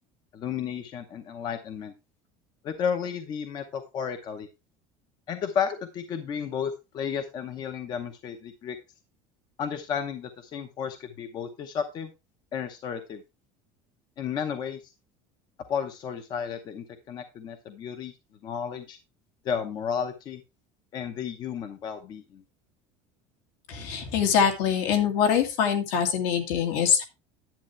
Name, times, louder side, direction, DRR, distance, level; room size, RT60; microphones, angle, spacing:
voice 1, 0.3-1.9 2.6-4.5 5.3-8.8 9.6-12.1 12.5-13.2 14.2-14.8 15.7-18.1 18.4-19.0 19.4-20.4 20.9-22.4, left 7 dB, 30° left, 8 dB, 0.8 m, -32 dB
voice 2, 23.7-27.0, left 7 dB, 70° left, 4 dB, 2.2 m, -24 dB
10.5 x 8.5 x 3.2 m, 0.25 s
cardioid pair, 180°, 14 cm